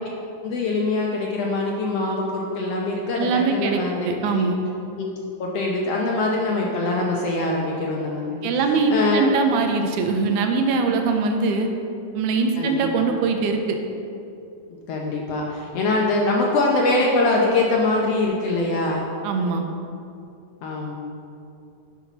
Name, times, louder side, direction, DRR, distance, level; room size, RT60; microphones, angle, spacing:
voice 1, 0.4-4.5 5.0-5.1 5.4-8.3 8.7-9.3 12.6-12.8 14.9-19.1 20.6-20.9, left 2 dB, 80° left, -2 dB, 1.4 m, -23 dB
voice 2, 3.2-4.6 8.4-11.7 12.2-13.8 19.2-19.6, right 4 dB, 80° right, 4 dB, 2.0 m, -22 dB
12.0 x 5.7 x 4.0 m, 2.6 s
omnidirectional pair, 3.8 m